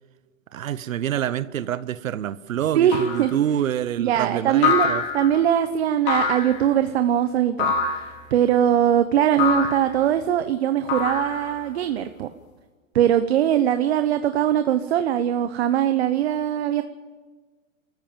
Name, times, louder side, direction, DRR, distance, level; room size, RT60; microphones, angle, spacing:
voice 1, 0.5-5.0, right 10 dB, 90° right, 15 dB, 0.9 m, -27 dB
voice 2, 2.7-3.3 4.0-4.9 5.1-7.7 8.3-12.3 12.9-16.8, right 10 dB, 55° right, 9 dB, 1.1 m, -21 dB
sound 1, 2.9-3.3 4.6-5.4 6.1-6.6 7.6-8.1 9.4-9.9 10.9-11.6, left 5 dB, 25° left, 2.7 m, -24 dB
27.5 x 14.5 x 7.5 m, 1.4 s
hypercardioid pair, 160°, 39 cm